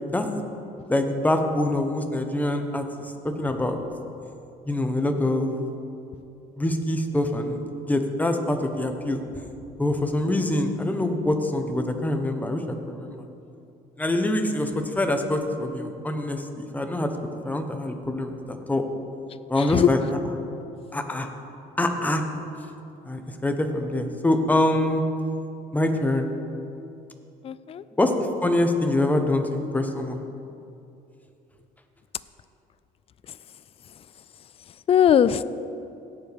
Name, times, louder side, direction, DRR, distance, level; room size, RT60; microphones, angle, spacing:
voice 1, 0.1-0.4 0.9-2.8 3.2-3.8 4.7-5.5 6.6-9.2 9.8-13.2 14.0-17.1 17.4-18.8 19.5-20.0 20.9-21.3 21.8-22.2 23.0-25.0 25.7-26.3 28.0-28.1 28.4-30.2, left 1 dB, 10° left, 5 dB, 1.0 m, -25 dB
voice 2, 19.6-19.9 27.4-27.8 34.9-35.4, left 9 dB, 35° left, 16 dB, 0.3 m, -19 dB
17.5 x 7.3 x 3.5 m, 2.7 s
cardioid pair, 110°, 17 cm